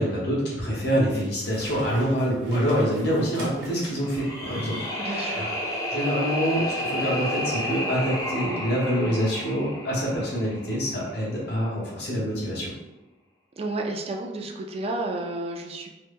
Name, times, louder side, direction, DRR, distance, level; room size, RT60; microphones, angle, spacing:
voice 1, 0.0-5.5 5.9-12.7, equal, 65° left, -5 dB, 1.1 m, -26 dB
sound 1, 1.4-4.4 6.8-7.1 7.6-7.8, right 2 dB, 80° right, 1.0 m, -45 dB
sound 2, 4.0-11.1, equal, 20° left, 0.6 m, -31 dB
voice 2, 5.0-5.6 13.6-16.1, right 2 dB, 35° right, 2 dB, 0.3 m, -32 dB
3.1 x 2.1 x 3.3 m, 1.0 s
head